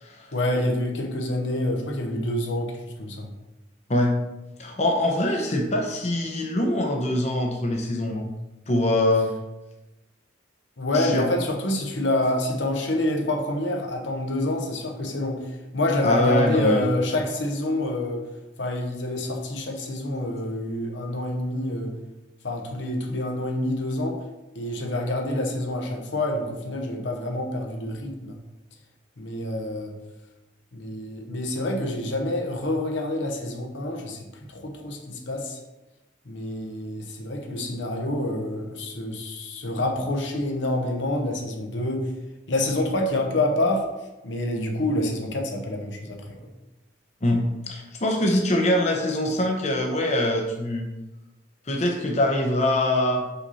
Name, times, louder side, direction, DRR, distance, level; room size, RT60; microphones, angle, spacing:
voice 1, 0.3-3.3 10.8-18.2 18.6-21.9 22.4-24.2 24.5-28.4 29.2-29.9 30.7-34.2 34.5-35.6 36.3-42.1 42.5-43.9 44.2-46.4, left 1 dB, 75° left, 2 dB, 1.0 m, -27 dB
voice 2, 4.6-8.3 8.7-9.3 10.9-11.2 16.0-16.9 47.2-50.9 51.7-53.2, left 1 dB, 35° left, 1 dB, 0.8 m, -23 dB
5.6 x 4.2 x 5.5 m, 1.0 s
head